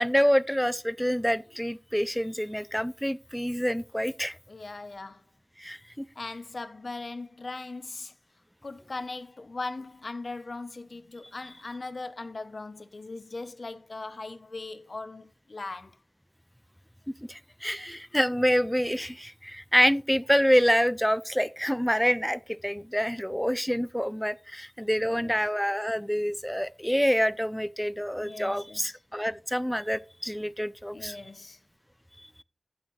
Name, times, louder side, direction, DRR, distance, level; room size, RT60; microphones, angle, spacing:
voice 1, 0.0-4.4 5.6-6.1 17.3-31.2, equal, 5° left, 0.4 m, -27 dB
voice 2, 4.5-5.2 6.2-8.1 8.6-16.0 25.0-25.4 28.1-29.0 30.9-31.6, left 3 dB, 70° left, 0.8 m, -39 dB
11.0 x 8.9 x 3.1 m
wide cardioid pair, 65°, 0 cm